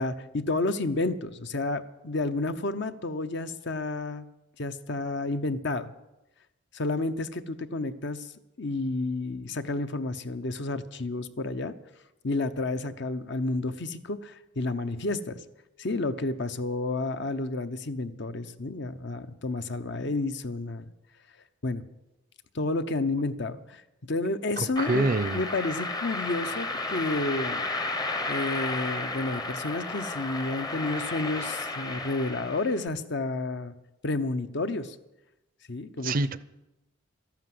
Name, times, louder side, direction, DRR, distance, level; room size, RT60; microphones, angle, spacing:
voice 1, 0.0-4.3 4.6-5.9 6.7-8.3 8.6-11.7 12.2-15.4 15.8-20.8 21.6-21.8 22.5-23.8 24.1-25.1 25.3-27.7 28.3-33.7 34.0-35.0 35.7-36.2, left 2 dB, 55° left, 10 dB, 0.8 m, -30 dB
sound 1, 24.8-32.9, left 2 dB, 20° left, 0.8 m, -33 dB
voice 2, 24.9-25.4 36.0-36.4, right 2 dB, 40° right, 15 dB, 0.5 m, -25 dB
13.5 x 12.0 x 7.7 m, 0.96 s
head